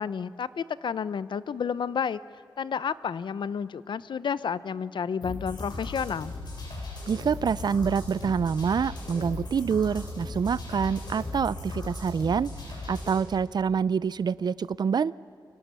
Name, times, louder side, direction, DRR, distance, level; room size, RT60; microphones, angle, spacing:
voice 1, 0.0-2.2 2.6-6.3, left 7 dB, 80° left, 16 dB, 0.7 m, -31 dB
sound 1, 5.2-13.2, left 2 dB, 60° left, 7.9 m, -37 dB
voice 2, 7.1-12.5 12.9-15.1, right 6 dB, 60° right, 20 dB, 0.5 m, -26 dB
29.5 x 24.0 x 6.9 m, 2.7 s
wide cardioid pair, 120°, 8 cm